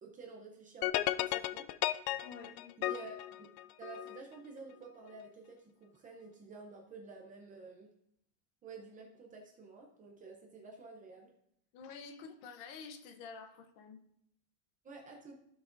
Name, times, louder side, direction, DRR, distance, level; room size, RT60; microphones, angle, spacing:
voice 1, 0.0-1.7 2.1-2.3 2.8-3.5 3.8-7.9 8.6-11.3 14.8-15.4, right 4 dB, 15° right, 0 dB, 0.5 m, -51 dB
sound 1, 0.8-4.2, left 15 dB, 85° left, 0.6 m, -34 dB
voice 2, 2.2-3.0 11.7-14.0, left 5 dB, 45° left, 8 dB, 0.8 m, -49 dB
15.5 x 6.0 x 2.5 m, 0.75 s
cardioid pair, 175°, 49 cm